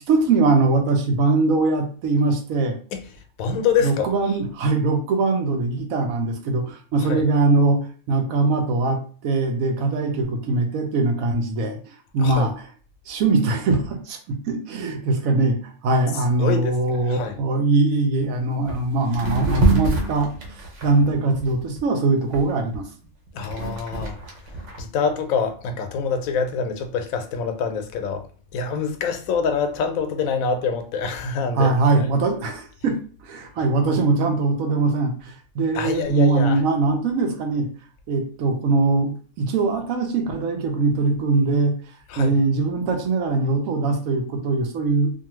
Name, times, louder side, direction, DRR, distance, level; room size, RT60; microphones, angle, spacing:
voice 1, 0.1-2.8 3.5-3.6 3.8-12.7 13.1-20.3 20.6-22.9 31.5-37.7 38.1-41.7 42.2-45.1, right 3 dB, 85° right, 1.1 m, -22 dB
voice 2, 3.4-4.1 7.0-7.2 12.2-12.5 16.4-17.4 23.3-24.1 24.8-28.3 28.5-32.1 35.7-36.6 42.1-42.3, left 6 dB, 90° left, 1.0 m, -25 dB
sound 1, 18.2-18.3 18.6-18.8 19.1-21.8 22.3-24.8, right 2 dB, 65° right, 1.1 m, -25 dB
2.6 x 2.5 x 2.9 m
omnidirectional pair, 1.4 m